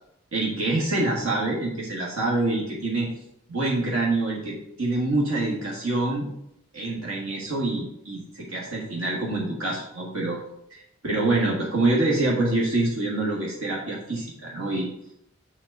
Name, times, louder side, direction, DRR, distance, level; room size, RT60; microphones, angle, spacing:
voice 1, 0.3-3.1 3.5-6.3 6.7-10.4 10.7-14.9, right 2 dB, 70° right, -3 dB, 1.6 m, -26 dB
7.2 x 4.0 x 6.5 m, 0.79 s
head